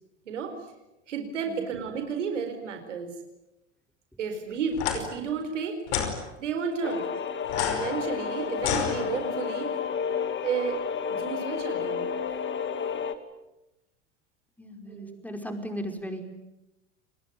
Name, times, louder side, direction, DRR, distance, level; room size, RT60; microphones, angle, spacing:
voice 1, 1.1-3.1 4.2-5.8 6.4-7.1 7.5-9.7 10.4-10.8 11.1-12.1 14.9-15.2, right 6 dB, 85° right, 5 dB, 4.6 m, -32 dB
sound 1, 4.7-5.0 5.9-6.1 7.5-9.5, left 8 dB, 70° left, 5.4 m, -30 dB
sound 2, 6.8-13.2, left 7 dB, 30° left, 2.4 m, -31 dB
voice 2, 14.6-16.2, equal, 5° left, 6 dB, 5.2 m, -36 dB
29.5 x 20.5 x 9.5 m, 0.94 s
hypercardioid pair, 85°, 36 cm